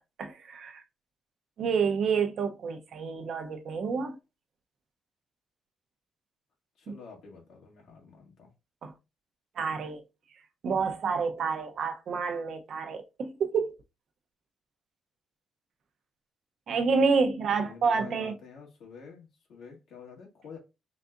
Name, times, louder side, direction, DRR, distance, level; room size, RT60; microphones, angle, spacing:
voice 1, 0.2-0.8 1.6-4.2 6.9-7.0 8.8-8.9 9.6-10.0 10.6-13.8 16.7-18.3, right 5 dB, 60° right, 0.7 m, -28 dB
voice 2, 6.8-8.5 17.4-20.6, left 5 dB, 80° left, 1.8 m, -49 dB
4.0 x 3.4 x 2.5 m
cardioid pair, 90°, 0 cm